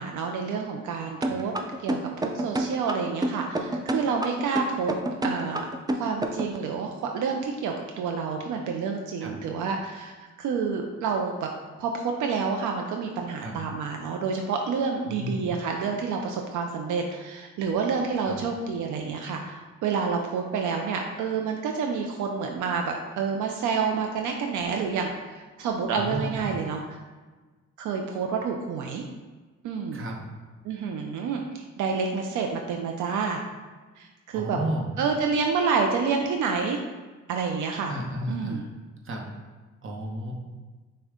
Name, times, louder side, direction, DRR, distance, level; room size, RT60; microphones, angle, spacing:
voice 1, 0.0-1.5 1.8-2.0 2.3-4.9 5.2-5.6 5.9-10.1 10.4-11.5 11.8-27.0 27.8-29.0 29.6-30.0 30.6-33.4 34.0-34.6 35.0-36.8 37.3-37.9 38.3-38.6, right 5 dB, 80° right, 2 dB, 0.5 m, -28 dB
sound 1, 1.2-6.6, right 1 dB, 15° right, 0.4 m, -28 dB
voice 2, 15.1-15.4 18.3-18.4 25.9-26.5 29.9-30.2 34.3-34.9 37.9-38.6 39.0-39.2 39.8-40.3, right 1 dB, 45° right, 0 dB, 0.9 m, -32 dB
6.2 x 2.3 x 3.6 m, 1.3 s
cardioid pair, 90°, 30 cm